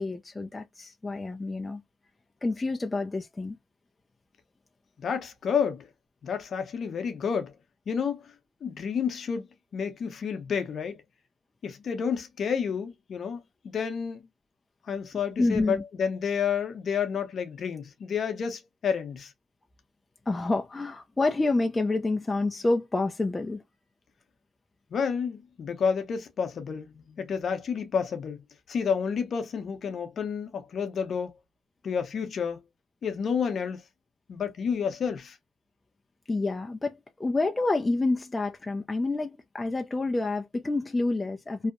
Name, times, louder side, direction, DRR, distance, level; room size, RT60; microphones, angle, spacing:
voice 1, 0.0-1.8 2.4-3.6 15.4-15.8 20.3-23.6 36.3-41.7, left 2 dB, 20° left, 0.4 m, -28 dB
voice 2, 5.0-5.9 6.2-7.5 7.9-8.2 8.6-9.5 9.7-11.0 11.6-14.3 14.9-19.3 24.9-31.3 31.8-32.6 33.0-33.8 34.3-35.4, left 6 dB, 55° left, 0.7 m, -30 dB
2.7 x 2.0 x 2.5 m
cardioid pair, 90°, 0 cm